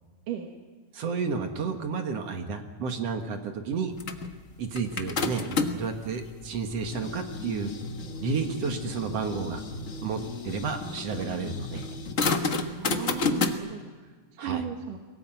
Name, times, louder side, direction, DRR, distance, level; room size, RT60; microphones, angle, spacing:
voice 1, 0.9-4.0 4.6-7.7 8.2-9.6 10.0-12.0 14.4-14.6, right 5 dB, 55° right, 6 dB, 2.4 m, -31 dB
sound 1, 4.0-5.9 6.5-13.5, left 4 dB, 85° left, 0.7 m, -31 dB
voice 2, 12.8-14.1 14.4-15.0, right 9 dB, 85° right, 3 dB, 3.1 m, -35 dB
22.5 x 18.0 x 9.1 m, 1.4 s
omnidirectional pair, 3.7 m